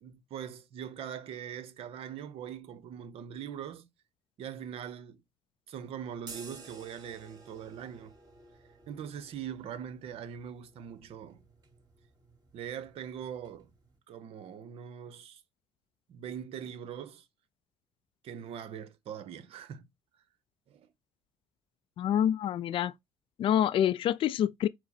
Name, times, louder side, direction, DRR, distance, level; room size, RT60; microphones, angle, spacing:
voice 1, 0.0-3.9 4.4-5.2 5.7-8.1 8.9-11.4 12.5-13.7 14.1-15.4 16.1-17.3 18.2-19.9 20.7-20.9, right 8 dB, 65° right, 0.8 m, -42 dB
sound 1, 6.2-14.0, right 3 dB, 35° right, 2.3 m, -53 dB
voice 2, 22.0-22.9 23.4-24.7, left 10 dB, 55° left, 0.4 m, -27 dB
4.6 x 2.1 x 4.2 m
hypercardioid pair, 65°, 11 cm